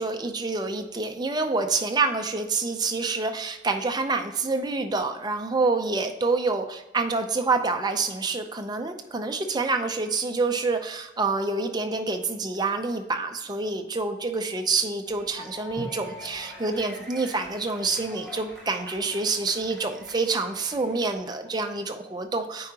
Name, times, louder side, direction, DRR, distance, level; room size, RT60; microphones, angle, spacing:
voice 1, 0.0-22.7, right 3 dB, 20° right, 5 dB, 0.5 m, -27 dB
sound 1, 15.1-21.7, equal, 5° left, 2.1 m, -44 dB
8.8 x 4.6 x 2.8 m, 1.0 s
head